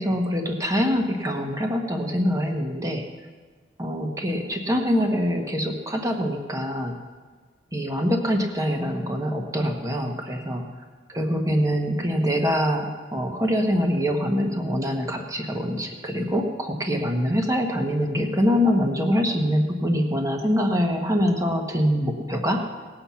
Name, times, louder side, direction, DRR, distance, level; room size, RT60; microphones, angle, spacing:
voice 1, 0.0-3.0 3.8-6.9 7.7-10.6 11.1-22.7, equal, 20° right, 3 dB, 1.3 m, -24 dB
18.5 x 7.9 x 5.8 m, 1.5 s
head